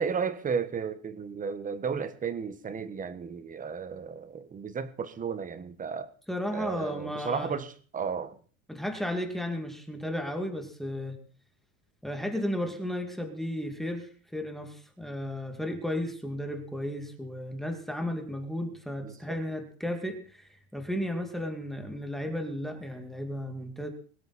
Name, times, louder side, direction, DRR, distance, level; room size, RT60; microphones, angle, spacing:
voice 1, 0.0-6.1 6.5-8.4 19.0-19.4, right 6 dB, 20° right, 1.4 m, -34 dB
voice 2, 6.3-7.5 8.7-11.2 12.0-23.9, left 1 dB, ahead, 2.5 m, -34 dB
22.0 x 12.5 x 4.3 m
supercardioid pair, 150°, 43 cm